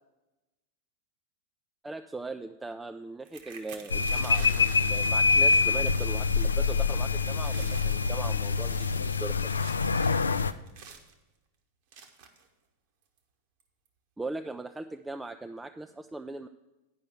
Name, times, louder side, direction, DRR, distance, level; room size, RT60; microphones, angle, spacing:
voice 1, 1.8-9.6 14.2-16.5, right 2 dB, 10° right, 7 dB, 0.3 m, -39 dB
sound 1, 3.3-6.6 6.9-7.1 7.4-7.9 8.5-11.1 11.9-12.5 13.2-13.3 13.6-13.9, right 6 dB, 50° right, 1.0 m, -49 dB
sound 2, 3.9-10.5, left 4 dB, 75° left, 0.3 m, -25 dB
9.2 x 5.4 x 6.6 m, 1.0 s
figure-of-eight pair, 90°, 0 cm